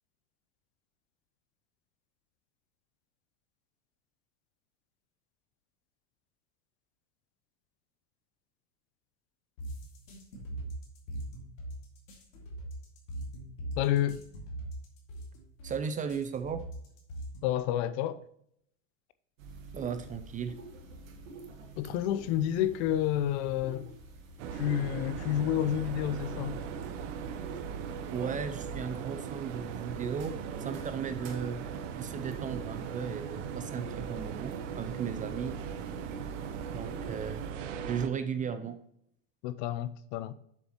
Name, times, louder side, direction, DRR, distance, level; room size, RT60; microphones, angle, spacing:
sound 1, 9.6-17.6, right 1 dB, 85° left, 2.2 m, -41 dB
voice 1, 13.8-14.2 17.4-18.2 21.8-23.9 24.5-26.6 39.4-40.3, left 11 dB, 55° left, 0.7 m, -29 dB
voice 2, 15.6-16.6 19.7-20.6 28.1-31.6 32.0-35.6 36.7-37.5 37.8-38.8, right 7 dB, 20° right, 0.5 m, -36 dB
sound 2, 19.4-37.5, right 3 dB, 85° right, 1.5 m, -48 dB
sound 3, 24.4-38.1, right 7 dB, 70° right, 0.9 m, -39 dB
7.1 x 6.9 x 3.0 m
hypercardioid pair, 110°, 39 cm